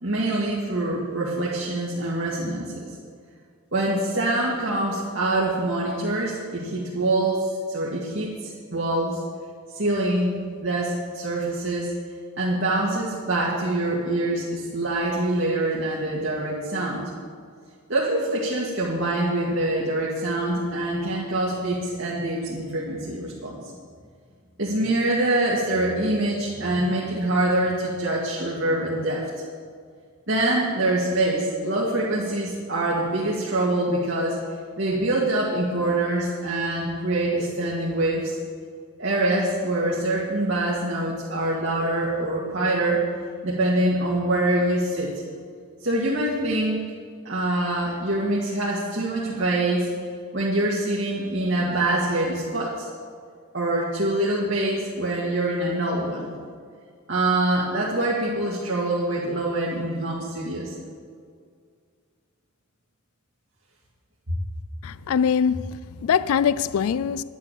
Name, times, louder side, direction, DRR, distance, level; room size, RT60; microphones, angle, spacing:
voice 1, 0.0-2.9 3.7-9.2 9.7-10.3 10.6-11.9 12.4-17.0 17.9-23.6 24.6-29.2 30.3-34.4 34.8-38.3 39.0-43.0 43.4-45.1 45.8-46.8 47.3-49.9 50.3-52.9 53.5-56.3 57.1-60.7, right 1 dB, 55° right, 2.0 m, -25 dB
voice 2, 64.8-67.2, left 7 dB, 75° left, 0.3 m, -23 dB
10.5 x 10.5 x 7.1 m
head